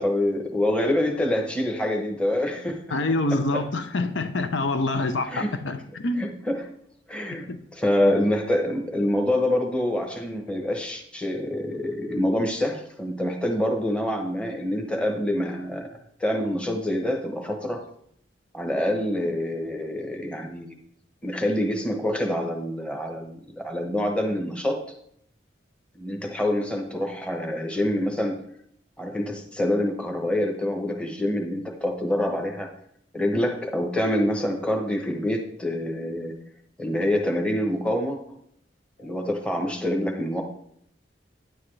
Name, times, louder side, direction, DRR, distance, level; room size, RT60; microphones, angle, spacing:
voice 1, 0.0-2.8 3.3-3.6 5.3-5.5 6.2-6.7 7.1-7.5 7.7-15.9 16.2-17.8 18.5-20.8 21.2-24.8 25.9-28.4 29.0-32.7 33.1-36.3 36.8-38.2 39.0-40.4, left 1 dB, 5° left, 2 dB, 1.0 m, -26 dB
voice 2, 2.9-6.3 7.5-7.6 39.0-39.2, left 2 dB, 80° left, 9 dB, 0.7 m, -26 dB
9.9 x 8.3 x 3.3 m, 0.70 s
head